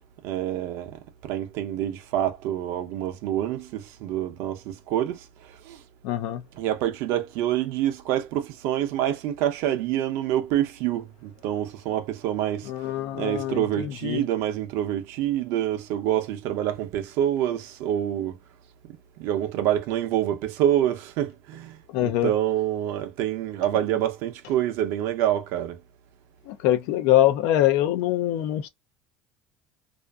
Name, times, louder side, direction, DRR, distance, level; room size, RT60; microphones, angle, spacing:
voice 1, 0.2-5.8 6.5-12.7 13.1-18.4 19.2-25.8, right 11 dB, 75° right, 0.6 m, -27 dB
voice 2, 6.0-6.4 12.7-14.2 21.9-22.3 26.5-28.7, left 13 dB, 75° left, 0.4 m, -23 dB
2.5 x 2.4 x 2.2 m
supercardioid pair, 100°, 5 cm